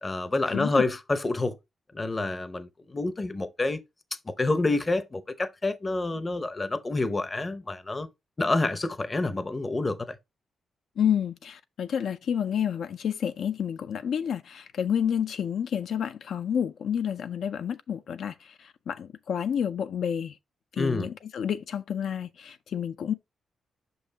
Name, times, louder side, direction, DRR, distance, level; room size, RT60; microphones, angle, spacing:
voice 1, 0.0-1.6 1.9-3.8 4.3-8.1 8.4-10.1 20.8-21.1, left 2 dB, 20° left, 0.6 m, -28 dB
voice 2, 0.5-0.8 11.0-20.4 20.7-23.1, left 8 dB, 70° left, 0.4 m, -29 dB
6.4 x 5.4 x 2.8 m
wide cardioid pair, 145°, 0 cm